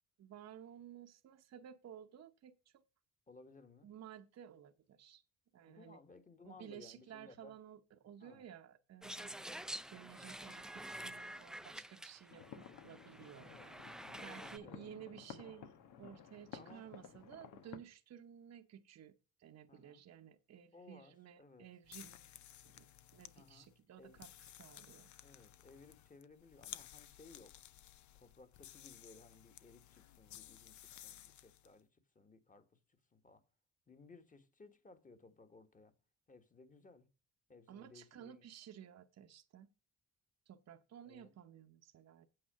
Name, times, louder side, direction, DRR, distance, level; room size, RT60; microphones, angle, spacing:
voice 1, 0.2-2.8 3.8-5.2 5.5-6.0 6.4-13.7 14.2-15.7 16.0-22.3 22.6-22.9 23.1-24.3 24.6-25.1 37.7-39.7 40.5-42.3, right 9 dB, 60° right, 0.9 m, -55 dB
voice 2, 3.3-3.9 5.7-7.5 8.2-8.5 11.6-11.8 13.3-13.7 14.2-15.0 16.6-16.8 19.7-20.0 20.7-21.7 23.4-23.7 24.0-24.2 25.2-27.6 28.1-33.4 33.9-36.0 36.3-37.1 37.5-38.4 41.1-41.3, left 3 dB, 25° left, 1.7 m, -60 dB
sound 1, 9.0-14.6, right 1 dB, ahead, 0.5 m, -48 dB
sound 2, 12.3-17.8, left 8 dB, 85° left, 1.3 m, -54 dB
sound 3, 21.8-31.7, left 12 dB, 70° left, 0.7 m, -56 dB
8.7 x 6.5 x 5.0 m
cardioid pair, 90°, 30 cm